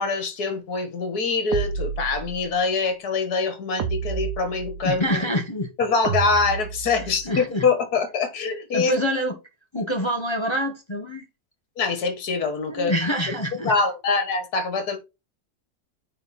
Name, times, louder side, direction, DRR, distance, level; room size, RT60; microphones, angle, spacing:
voice 1, 0.0-5.2 5.8-9.0 11.8-12.9 13.3-13.4 13.6-15.0, left 4 dB, 65° left, 2.0 m, -24 dB
sound 1, 1.5-2.6 3.8-5.1 6.0-7.3, right 7 dB, 75° right, 1.5 m, -30 dB
voice 2, 4.8-5.7 7.2-7.6 8.7-9.4 9.7-11.2 12.7-13.7, equal, 20° left, 1.2 m, -25 dB
9.0 x 4.0 x 4.3 m
omnidirectional pair, 1.8 m